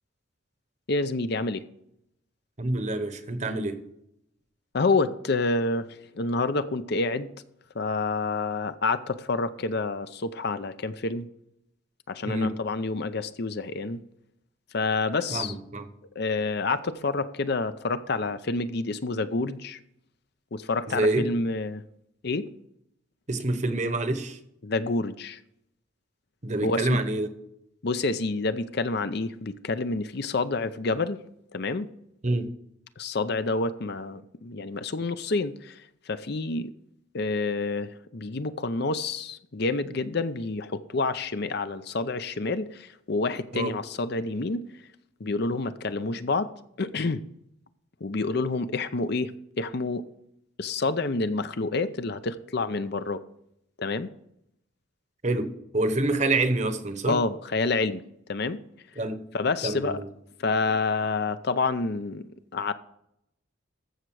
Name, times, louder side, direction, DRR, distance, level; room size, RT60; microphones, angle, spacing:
voice 1, 0.9-1.6 4.7-5.9 6.2-7.3 7.7-11.3 12.1-14.0 14.7-15.5 16.2-19.8 20.5-21.8 22.2-22.5 24.6-25.4 26.6-27.0 27.8-31.2 31.5-31.9 33.0-35.8 36.1-36.7 37.1-44.6 45.2-46.5 46.8-47.2 48.0-49.3 49.6-50.0 50.6-53.2 53.8-54.1 57.1-58.0 58.3-58.6 59.3-60.0 60.4-62.7, left 3 dB, 50° left, 0.6 m, -28 dB
voice 2, 2.6-3.8 12.2-12.6 15.3-15.9 20.9-21.3 23.3-24.4 26.4-27.3 32.2-32.5 43.5-43.8 55.2-57.2 59.0-59.3 59.6-60.1, right 2 dB, 35° right, 1.0 m, -27 dB
14.5 x 6.3 x 4.8 m
head